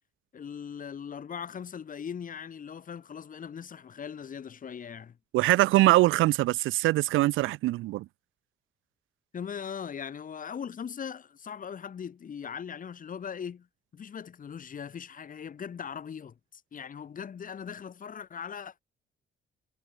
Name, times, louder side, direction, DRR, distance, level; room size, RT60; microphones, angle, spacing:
voice 1, 0.3-5.2 9.3-13.7 13.9-18.8, left 7 dB, 45° left, 1.1 m, -40 dB
voice 2, 5.3-8.1, right 18 dB, 85° right, 0.5 m, -23 dB
cardioid pair, 90°, 20 cm